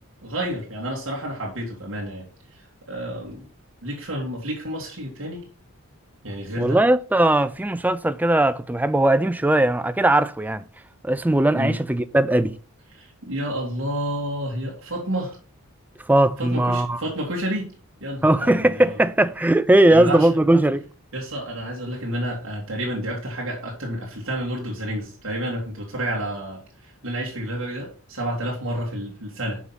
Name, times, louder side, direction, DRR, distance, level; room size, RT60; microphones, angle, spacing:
voice 1, 0.2-3.5 3.8-5.4 6.2-6.8 11.5-11.8 12.9-15.4 16.4-17.7 18.0-19.0 19.9-20.3 21.1-29.6, right 1 dB, 60° right, 2.0 m, -30 dB
voice 2, 6.6-10.6 11.0-12.6 16.1-17.0 18.2-20.8, right 1 dB, 5° right, 0.3 m, -19 dB
6.2 x 5.5 x 5.8 m
head